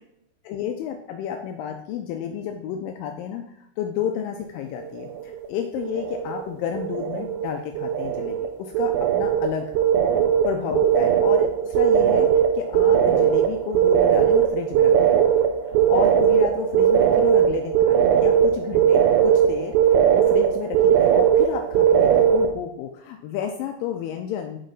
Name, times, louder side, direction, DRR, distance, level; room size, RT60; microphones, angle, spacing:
voice 1, 0.5-9.7 10.5-15.0 15.7-24.6, left 8 dB, 85° left, 4 dB, 2.0 m, -31 dB
sound 1, 4.9-5.5 5.8-6.5 6.8-22.5, right 9 dB, 90° right, 2.6 m, -19 dB
6.5 x 4.5 x 4.0 m, 0.73 s
omnidirectional pair, 4.5 m